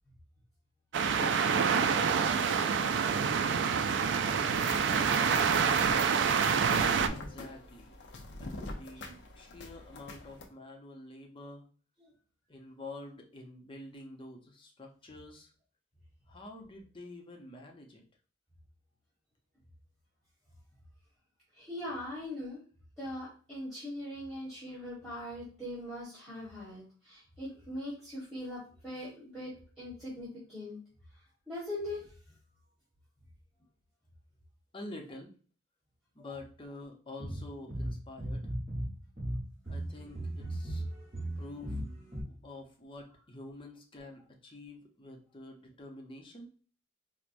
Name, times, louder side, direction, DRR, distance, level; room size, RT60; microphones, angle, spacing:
sound 1, 0.9-7.1, right 6 dB, 75° right, 0.3 m, -27 dB
sound 2, 4.5-10.5, left 2 dB, 75° left, 0.6 m, -45 dB
voice 1, 7.1-7.9 8.4-11.6 12.5-15.5 16.3-18.0 34.7-35.3 36.1-38.5 39.7-40.8 41.4-41.8 42.3-46.5, left 2 dB, 30° left, 1 dB, 0.7 m, -48 dB
voice 2, 21.6-22.6 23.0-29.5 29.8-30.8 31.5-32.0, left 1 dB, ahead, -9 dB, 1.3 m, -41 dB
sound 3, 37.2-38.9 39.2-42.2, right 1 dB, 35° right, 1.2 m, -36 dB
4.5 x 2.1 x 2.5 m, 0.40 s
head